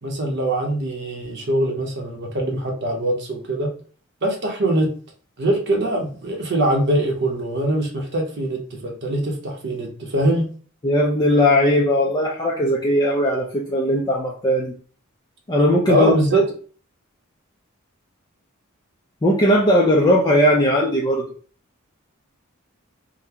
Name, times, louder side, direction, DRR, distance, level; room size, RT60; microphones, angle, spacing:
voice 1, 0.0-3.7 4.2-4.9 5.4-10.5 15.9-16.4, right 1 dB, 55° right, 1 dB, 0.8 m, -22 dB
voice 2, 10.8-14.7 15.5-16.1 19.2-21.2, left 1 dB, 20° left, -3 dB, 0.4 m, -18 dB
3.8 x 2.1 x 2.8 m, 0.42 s
head